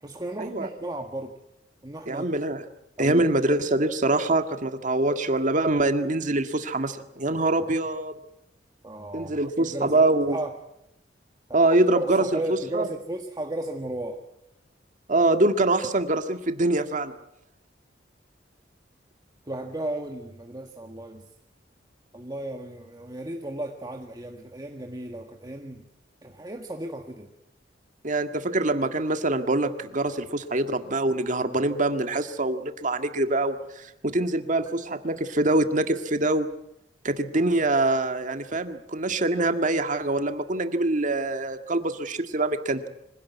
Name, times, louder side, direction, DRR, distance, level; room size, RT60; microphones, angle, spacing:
voice 1, 0.0-1.3 1.8-2.3 3.0-3.2 8.8-10.0 10.3-10.5 11.9-14.2 19.5-21.3 22.1-25.8 26.2-27.3 34.5-34.6, right 1 dB, 20° right, 3 dB, 1.6 m, -34 dB
voice 2, 2.1-2.6 3.0-8.1 9.1-10.4 11.5-12.9 15.1-17.1 28.0-36.5 37.0-42.9, right 2 dB, 45° right, 7 dB, 1.8 m, -24 dB
25.5 x 17.0 x 9.4 m, 0.83 s
head